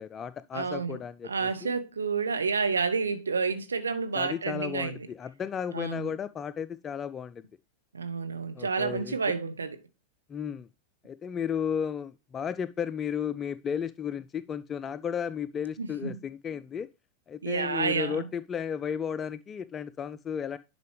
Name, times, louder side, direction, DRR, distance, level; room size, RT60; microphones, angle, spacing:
voice 1, 0.0-1.8 4.1-7.4 8.6-9.2 10.3-10.7 11.0-16.9 17.3-20.6, left 7 dB, 25° left, 0.3 m, -34 dB
voice 2, 0.5-5.1 5.7-6.1 7.9-9.8 15.8-16.2 17.4-18.3, right 5 dB, 75° right, 0.8 m, -30 dB
10.5 x 5.4 x 3.2 m
figure-of-eight pair, 90°, 0 cm